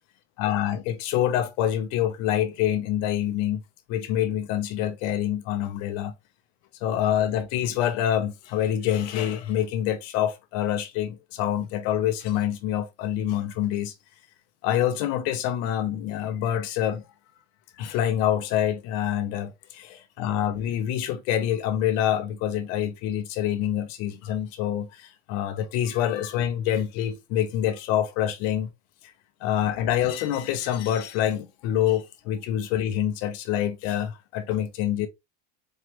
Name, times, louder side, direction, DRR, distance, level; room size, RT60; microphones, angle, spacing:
voice 1, 0.4-3.6 3.9-6.1 6.8-13.9 14.6-17.0 17.8-28.7 29.4-35.1, left 11 dB, 45° left, 0.7 m, -26 dB
4.4 x 3.2 x 3.0 m
cardioid pair, 165°, 34 cm